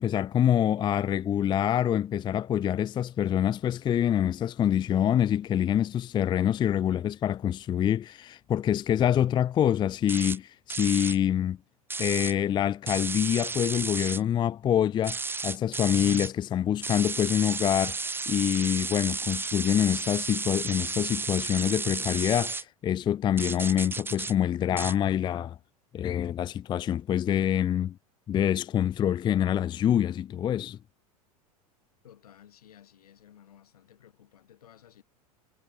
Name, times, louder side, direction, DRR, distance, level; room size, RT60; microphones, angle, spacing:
voice 1, 0.0-11.6 12.0-25.6 25.9-28.0 28.3-30.8, left 10 dB, 25° left, 0.5 m, -26 dB
sound 1, 10.1-10.4 10.7-11.2 11.9-12.3 12.9-14.2 15.0-16.3 16.8-22.6 23.4-24.3 24.8-24.9, right 3 dB, 10° right, 0.9 m, -33 dB
voice 2, 32.0-35.0, left 10 dB, 75° left, 2.4 m, -55 dB
figure-of-eight pair, 85°, 20 cm